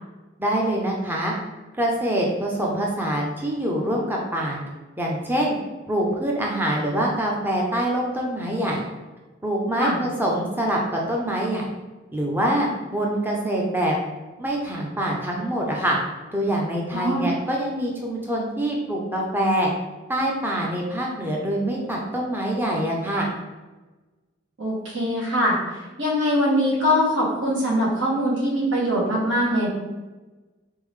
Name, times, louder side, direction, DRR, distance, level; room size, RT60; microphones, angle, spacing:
voice 1, 0.4-1.3 1.8-4.6 5.0-5.6 5.9-8.8 9.4-11.7 12.1-14.0 14.4-16.0 16.3-19.7 20.1-23.3, right 1 dB, 10° right, -2 dB, 0.5 m, -25 dB
voice 2, 16.9-17.3 24.6-29.7, equal, 70° right, -4 dB, 1.4 m, -22 dB
3.9 x 3.6 x 3.2 m, 1.2 s
head